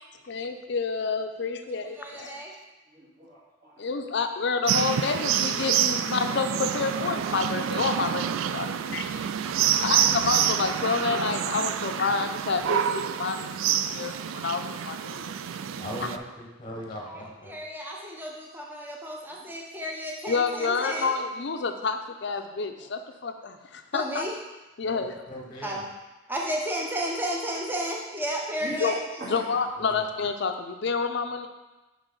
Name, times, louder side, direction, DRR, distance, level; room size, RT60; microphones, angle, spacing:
voice 1, 0.2-2.4 3.8-9.2 9.8-15.8 20.3-24.2 24.8-25.1 28.8-28.9 29.2-31.5, left 4 dB, 55° left, 7 dB, 0.5 m, -29 dB
voice 2, 1.7-2.5 17.1-17.2 17.4-21.1 23.9-24.3 25.6-25.8 26.3-29.0, equal, 10° right, -2 dB, 0.7 m, -32 dB
voice 3, 2.9-3.9 19.4-19.5 22.7-22.9 27.1-27.2 28.6-28.9 29.1-29.6, right 1 dB, 50° right, -8 dB, 2.3 m, -42 dB
sound 1, 4.7-16.2, right 9 dB, 80° right, 0.3 m, -27 dB
voice 4, 15.8-17.6 24.8-25.8 29.8-30.0, equal, 25° left, -1 dB, 0.9 m, -39 dB
6.2 x 5.2 x 3.8 m, 1.1 s
head